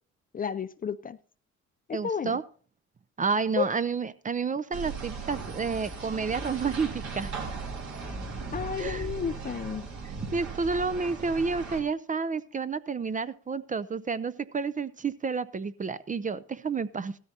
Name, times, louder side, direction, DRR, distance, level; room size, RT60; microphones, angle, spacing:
voice 1, 0.3-1.2 1.9-2.4 3.6-3.7 8.5-9.8, left 7 dB, 30° left, 0.4 m, -31 dB
voice 2, 1.9-2.4 3.2-7.3 8.8-9.1 10.3-17.2, right 5 dB, 25° right, 0.5 m, -30 dB
sound 1, 4.7-11.8, right 4 dB, 70° right, 3.0 m, -37 dB
15.5 x 13.0 x 2.8 m
cardioid pair, 90°, 30 cm